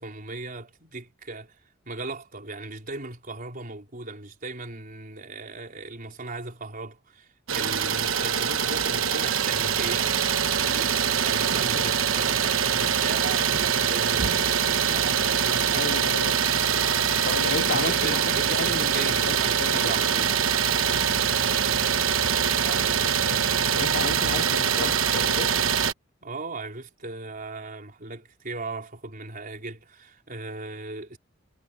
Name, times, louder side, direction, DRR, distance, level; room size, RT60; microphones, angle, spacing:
voice 1, 0.0-1.6 1.9-10.2 10.5-16.2 17.7-20.3 26.2-31.2, right 3 dB, 45° right, 4.3 m, -37 dB
Idling, 7.5-25.9, right 8 dB, 80° right, 1.2 m, -24 dB
voice 2, 15.8-16.6 17.2-20.0 23.2-25.6, left 4 dB, 60° left, 0.9 m, -33 dB
head